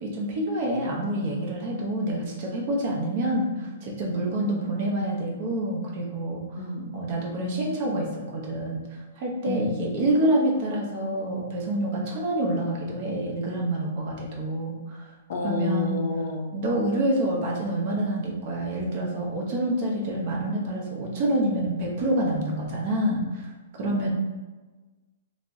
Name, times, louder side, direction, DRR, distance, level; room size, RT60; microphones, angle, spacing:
voice 1, 0.0-6.4 6.9-15.1 15.4-16.0 16.5-23.5 23.7-24.1, right 1 dB, 35° right, -2 dB, 0.6 m, -27 dB
voice 2, 4.1-4.7 6.6-6.9 9.5-9.9 15.3-16.5 23.8-24.1, left 2 dB, 45° left, 1 dB, 0.4 m, -31 dB
2.6 x 2.0 x 3.4 m, 1.3 s
hypercardioid pair, 175°, 0 cm